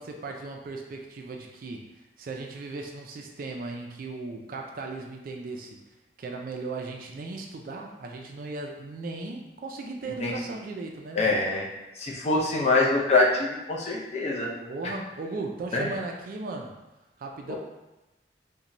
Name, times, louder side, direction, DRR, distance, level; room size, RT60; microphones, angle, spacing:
voice 1, 0.0-1.9 2.2-5.8 6.2-11.4 14.5-16.7 17.2-17.6, right 3 dB, 50° right, 2 dB, 0.3 m, -37 dB
voice 2, 11.1-11.7 12.0-14.5 15.7-15.9 17.5-17.6, left 2 dB, 35° left, -2 dB, 0.4 m, -24 dB
2.9 x 2.1 x 2.5 m, 1.0 s
head